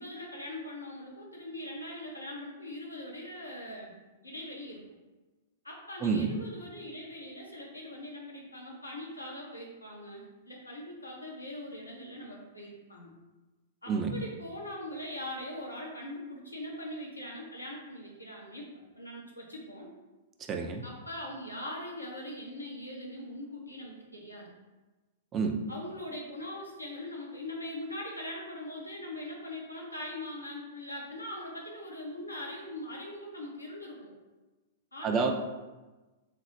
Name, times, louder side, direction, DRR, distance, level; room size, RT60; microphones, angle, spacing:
voice 1, 0.0-3.9 4.2-4.8 5.6-13.1 13.8-18.7 18.9-19.9 20.8-24.5 25.7-34.1 34.9-35.3, left 1 dB, 90° left, -2 dB, 0.8 m, -41 dB
voice 2, 6.0-6.4 13.9-14.2 20.5-20.8 25.3-25.6 35.0-35.3, right 5 dB, 25° right, 4 dB, 0.4 m, -28 dB
4.1 x 2.0 x 3.0 m, 1.2 s
figure-of-eight pair, 105°, 0 cm